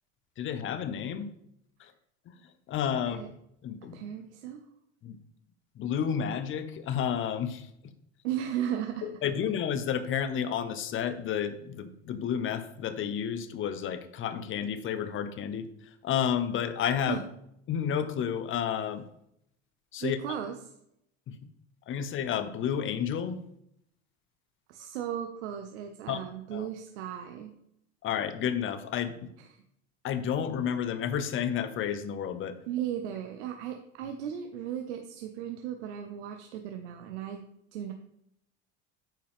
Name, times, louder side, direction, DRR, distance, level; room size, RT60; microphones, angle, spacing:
voice 1, 0.4-1.3 1.8-1.9 2.7-3.2 3.6-4.0 5.0-5.2 5.8-7.7 9.0-15.7 16.0-17.2 17.7-19.1 19.9-20.2 21.3-21.4 21.9-23.4 26.1-26.2 26.5-26.7 28.0-29.1 30.0-32.6, left 8 dB, 35° left, 11 dB, 0.8 m, -31 dB
voice 2, 3.9-4.6 8.2-9.1 17.1-17.2 20.0-20.5 24.7-27.5 29.4-29.6 32.7-37.4 37.7-37.9, right 10 dB, 80° right, 5 dB, 0.8 m, -36 dB
8.9 x 5.3 x 3.6 m, 0.76 s
supercardioid pair, 105°, 34 cm